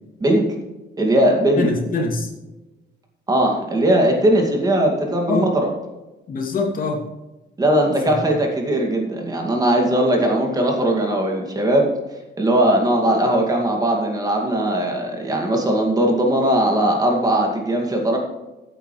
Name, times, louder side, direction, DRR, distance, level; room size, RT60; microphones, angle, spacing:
voice 1, 1.0-1.7 3.3-5.7 7.6-11.9 12.4-18.2, right 1 dB, 20° right, 1 dB, 2.3 m, -19 dB
voice 2, 1.6-2.3 5.3-5.5 6.3-7.0 7.9-8.2, left 3 dB, 50° left, 0 dB, 2.8 m, -24 dB
15.0 x 9.1 x 3.3 m, 1.1 s
cardioid pair, 160°, 18 cm